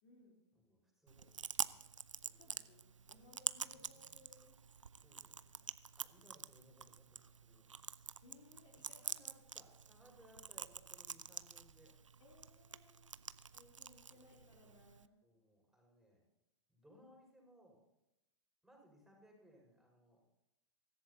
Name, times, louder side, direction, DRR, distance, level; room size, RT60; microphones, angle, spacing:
voice 1, 0.0-0.4 2.3-4.6 6.0-6.1 8.2-9.4 12.2-13.1 13.5-15.1, left 3 dB, 50° left, 0 dB, 3.7 m, -64 dB
voice 2, 0.5-1.8 2.2-2.8 3.7-4.3 5.0-5.6 5.9-7.7 8.8-12.0 13.2-13.6 14.1-14.3 15.2-16.3 16.7-17.8 18.6-20.2, equal, ahead, -1 dB, 5.8 m, -66 dB
Chewing mastication, 1.1-15.1, right 6 dB, 90° right, 0.6 m, -47 dB
24.5 x 14.5 x 2.9 m, 0.87 s
hypercardioid pair, 110°, 16 cm